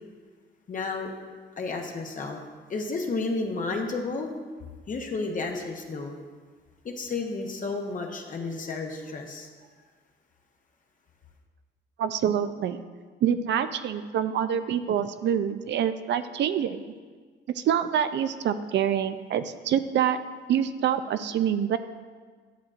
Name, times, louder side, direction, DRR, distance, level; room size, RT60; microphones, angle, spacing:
voice 1, 0.7-1.1 1.6-2.4 2.7-4.3 4.9-6.2 6.8-9.5, left 3 dB, 40° left, 2 dB, 0.9 m, -32 dB
voice 2, 12.0-12.8 13.2-16.8 17.5-20.2 20.5-21.8, right 9 dB, 65° right, 11 dB, 0.4 m, -26 dB
11.0 x 6.1 x 2.5 m, 1.5 s
cardioid pair, 90°, 20 cm